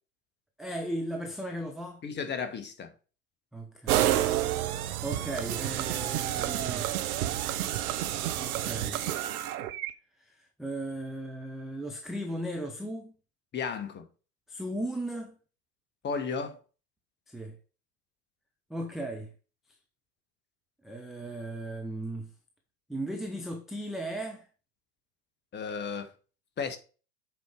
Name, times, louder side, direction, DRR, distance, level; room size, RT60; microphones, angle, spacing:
voice 1, 0.6-2.0 3.5-4.0 5.0-6.9 8.4-9.0 10.2-13.1 14.5-15.4 17.3-17.6 18.7-19.3 20.8-22.3 22.9-24.5, right 1 dB, ahead, 0.3 m, -36 dB
voice 2, 2.0-2.9 13.5-14.0 16.0-16.6 25.5-26.1 26.6-26.8, left 5 dB, 20° left, 1.3 m, -33 dB
sound 1, 3.9-9.9, right 12 dB, 65° right, 1.0 m, -29 dB
8.0 x 4.4 x 5.0 m
hypercardioid pair, 100°, 47 cm